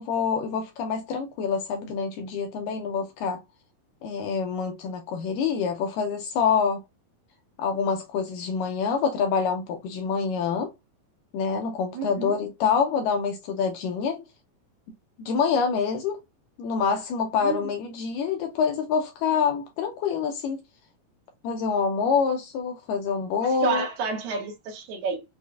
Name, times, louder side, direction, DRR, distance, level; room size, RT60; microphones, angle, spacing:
voice 1, 0.0-3.4 4.0-6.8 7.6-10.7 11.3-14.2 15.2-16.2 16.6-20.6 21.4-23.9, left 6 dB, 80° left, 2.0 m, -26 dB
voice 2, 11.9-12.3 17.4-17.6 23.6-25.2, right 5 dB, 75° right, 2.3 m, -30 dB
6.7 x 2.4 x 2.3 m
omnidirectional pair, 4.3 m